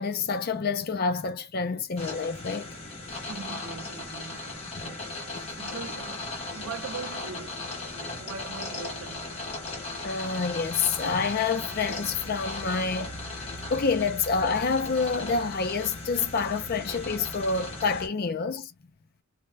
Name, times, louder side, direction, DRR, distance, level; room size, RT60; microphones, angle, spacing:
voice 1, 0.0-2.7 10.0-13.1 13.7-18.7, left 4 dB, 45° left, 0.4 m, -28 dB
sound 1, 2.0-18.1, left 2 dB, 25° left, 0.8 m, -37 dB
voice 2, 3.2-9.4, right 5 dB, 65° right, 0.5 m, -42 dB
2.3 x 2.1 x 3.2 m
head